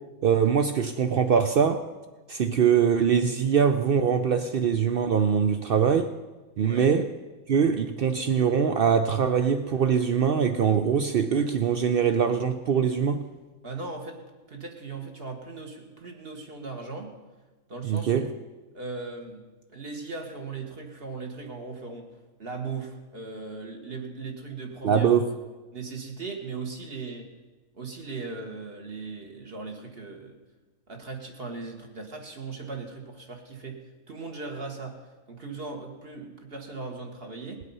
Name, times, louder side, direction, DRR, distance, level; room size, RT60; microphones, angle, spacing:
voice 1, 0.2-1.9 2.3-6.1 6.6-7.1 7.5-13.3 17.8-18.3 24.8-25.3, right 7 dB, 80° right, 0.5 m, -23 dB
voice 2, 13.6-14.2 14.5-17.1 17.7-18.3 18.7-19.4 19.7-22.1 22.4-25.1 25.7-27.3 27.7-30.4 30.9-33.8 34.1-37.6, right 4 dB, 40° right, 1.6 m, -38 dB
19.0 x 8.2 x 5.5 m
omnidirectional pair, 1.6 m